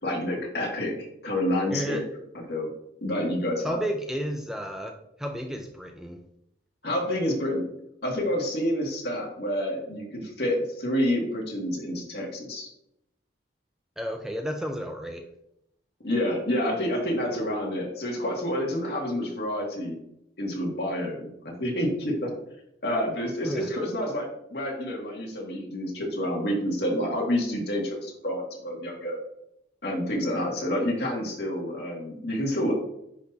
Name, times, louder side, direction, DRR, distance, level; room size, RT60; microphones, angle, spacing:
voice 1, 0.0-2.1 2.5-2.7 3.0-3.8 6.8-7.6 8.0-12.7 16.0-20.0 20.4-22.3 22.8-29.2 29.8-32.7, left 1 dB, 60° left, -2 dB, 2.0 m, -28 dB
voice 2, 1.7-2.0 3.2-3.3 3.6-6.2 14.0-15.3 23.4-23.7, equal, 5° right, 3 dB, 0.4 m, -32 dB
10.0 x 4.2 x 2.7 m, 0.78 s
head